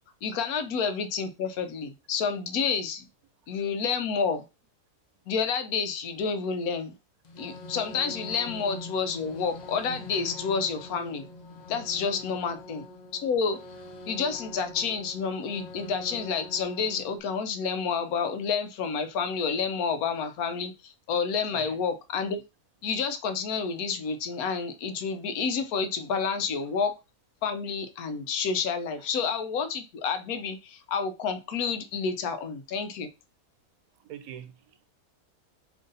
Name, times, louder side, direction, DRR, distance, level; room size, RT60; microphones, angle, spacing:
voice 1, 0.2-3.0 3.5-4.4 5.3-6.9 7.4-11.3 11.7-12.8 13.2-13.6 14.1-22.4 22.8-26.9 27.4-33.1, left 5 dB, 80° left, 1.2 m, -29 dB
sound 1, 7.2-17.2, left 2 dB, 45° left, 0.5 m, -43 dB
voice 2, 34.0-34.9, right 9 dB, 80° right, 1.1 m, -43 dB
3.9 x 3.2 x 3.8 m
omnidirectional pair, 1.5 m